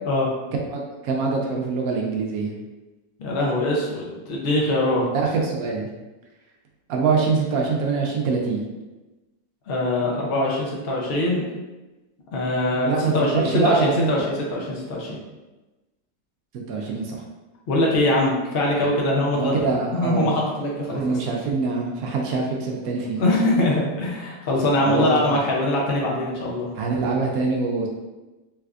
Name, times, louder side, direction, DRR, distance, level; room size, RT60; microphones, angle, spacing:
voice 1, 0.7-2.5 5.1-5.9 6.9-8.6 12.9-14.2 16.7-17.2 18.8-18.9 19.3-20.3 20.9-23.2 24.9-25.4 26.8-27.9, right 4 dB, 70° right, 0 dB, 0.9 m, -24 dB
voice 2, 3.2-5.1 9.7-11.4 12.3-15.2 17.7-21.2 23.2-26.7, left 1 dB, 70° left, -3 dB, 0.5 m, -23 dB
3.3 x 3.3 x 2.4 m, 1.1 s
omnidirectional pair, 1.8 m